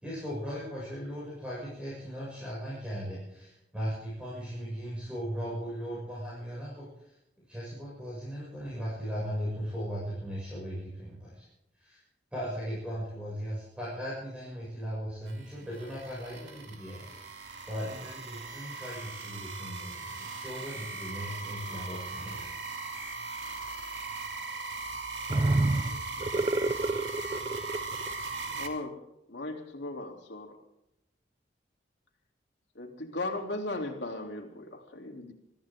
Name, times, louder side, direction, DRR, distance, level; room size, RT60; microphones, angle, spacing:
voice 1, 0.0-7.2 7.5-11.5 11.8-12.0 12.3-22.7, equal, 5° right, 6.8 m, -38 dB
sound 1, 15.3-28.7, right 3 dB, 80° right, 2.6 m, -39 dB
voice 2, 25.3-27.8, right 2 dB, 30° right, 0.5 m, -28 dB
voice 3, 28.5-28.9 29.3-30.6 32.7-35.3, left 2 dB, 75° left, 3.3 m, -37 dB
24.0 x 14.5 x 3.8 m
head